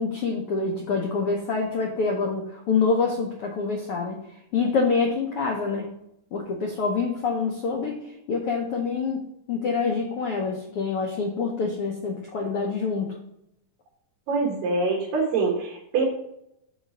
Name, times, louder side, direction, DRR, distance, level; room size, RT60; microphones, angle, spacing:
voice 1, 0.0-4.2 4.5-5.9 6.3-8.0 8.3-9.2 9.5-13.1, left 4 dB, 85° left, 0 dB, 1.2 m, -26 dB
voice 2, 14.3-16.0, right 4 dB, 85° right, -2 dB, 2.9 m, -24 dB
6.4 x 4.1 x 6.2 m, 0.79 s
omnidirectional pair, 3.8 m